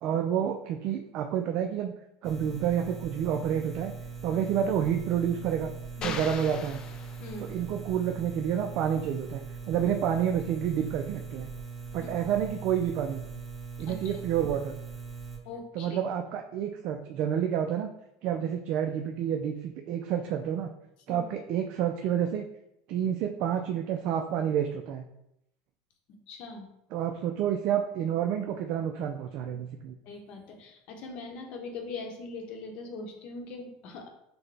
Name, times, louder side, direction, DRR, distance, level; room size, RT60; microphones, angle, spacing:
voice 1, 0.0-1.9 2.2-3.9 4.2-5.7 6.0-6.8 7.4-11.5 11.9-13.2 13.8-14.7 15.7-17.9 18.2-20.7 21.1-22.4 22.9-25.0 26.9-30.0, right 9 dB, 50° right, 4 dB, 0.3 m, -29 dB
sound 1, 2.2-15.4, right 5 dB, 5° right, 0.7 m, -41 dB
sound 2, 6.0-7.7, left 6 dB, 30° left, 0.3 m, -39 dB
voice 2, 7.2-7.5 12.0-12.1 13.9-14.1 15.4-16.0 21.1-21.2 26.3-26.7 30.0-34.1, left 3 dB, 50° left, 3 dB, 0.8 m, -41 dB
5.8 x 2.1 x 3.3 m, 0.80 s
supercardioid pair, 135°, 3 cm